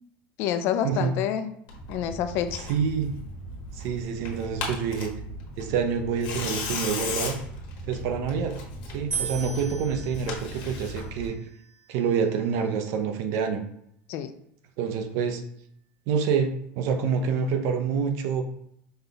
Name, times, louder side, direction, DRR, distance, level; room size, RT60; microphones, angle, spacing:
voice 1, 0.4-1.5 1.9-2.6 14.1-14.3, left 9 dB, 45° left, 10 dB, 0.3 m, -27 dB
Tearing, 1.7-11.3, left 2 dB, 65° left, 1.2 m, -36 dB
voice 2, 2.7-3.1 3.7-5.1 5.6-7.4 7.8-8.6 8.9-11.4 11.9-13.6 14.8-15.4 16.1-18.4, right 6 dB, 55° right, 6 dB, 0.6 m, -27 dB
sound 1, 9.1-12.3, right 6 dB, 25° right, 1.0 m, -37 dB
5.3 x 2.3 x 3.9 m, 0.71 s
cardioid pair, 160°, 6 cm